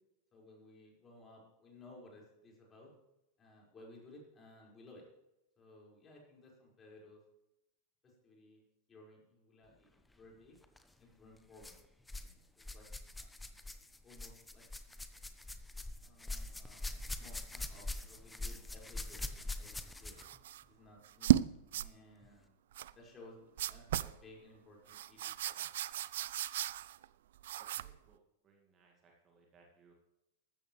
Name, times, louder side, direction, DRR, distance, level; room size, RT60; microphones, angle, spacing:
voice 1, 0.3-2.9 3.4-5.0 5.6-7.2 8.0-8.6 8.9-10.6 11.0-11.8 12.1-12.8 13.2-13.3 14.0-14.6 16.0-20.2 20.7-22.5 22.9-25.8, left 2 dB, 20° left, -2 dB, 5.3 m, -58 dB
sound 1, 10.6-10.8 11.6-12.3 12.6-20.4 21.3-21.4 22.2-22.3, left 2 dB, 5° left, 0.9 m, -44 dB
sound 2, 20.2-20.6 21.0-21.4 21.7-21.9 22.7-22.9 23.6-24.2 24.9-27.0 27.4-28.0, right 12 dB, 60° right, 0.4 m, -34 dB
voice 2, 27.8-29.9, right 4 dB, 30° right, 0 dB, 2.2 m, -67 dB
14.5 x 13.0 x 3.3 m, 0.89 s
figure-of-eight pair, 90°, 0 cm